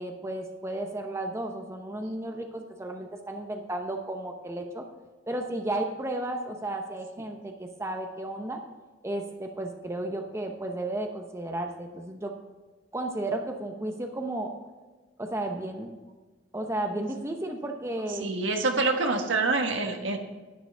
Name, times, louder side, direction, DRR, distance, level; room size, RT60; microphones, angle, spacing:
voice 1, 0.0-4.8 5.3-8.6 9.0-12.3 12.9-14.5 15.2-15.9 16.5-18.3, right 1 dB, 15° right, 3 dB, 0.8 m, -33 dB
voice 2, 18.2-20.2, right 3 dB, 80° right, 4 dB, 1.4 m, -26 dB
11.0 x 9.7 x 3.4 m, 1.3 s
head